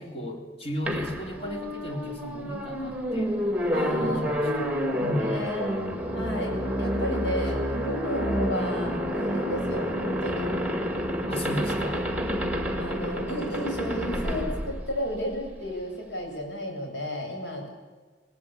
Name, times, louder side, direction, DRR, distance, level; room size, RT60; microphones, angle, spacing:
voice 1, 0.0-3.4 4.0-4.7 5.0-5.4 11.3-12.1, left 1 dB, 35° left, 2 dB, 3.6 m, -35 dB
sound 1, 0.9-15.6, equal, 10° right, 2.1 m, -29 dB
voice 2, 3.7-5.9 6.1-10.5 12.1-17.7, left 1 dB, 85° left, 2 dB, 7.8 m, -33 dB
26.0 x 18.5 x 8.7 m, 1.4 s
head